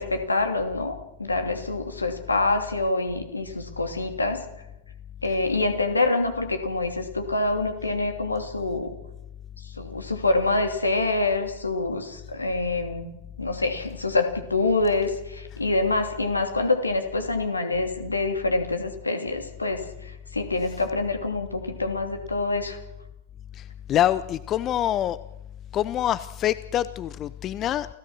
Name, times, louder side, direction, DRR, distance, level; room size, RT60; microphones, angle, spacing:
voice 1, 0.0-4.4 5.2-8.9 9.6-13.1 13.4-22.8, left 2 dB, 80° left, 6 dB, 2.8 m, -26 dB
voice 2, 23.5-25.2 25.7-27.9, left 12 dB, 30° left, 16 dB, 0.7 m, -25 dB
29.0 x 16.5 x 6.3 m, 0.88 s
figure-of-eight pair, 90°, 0 cm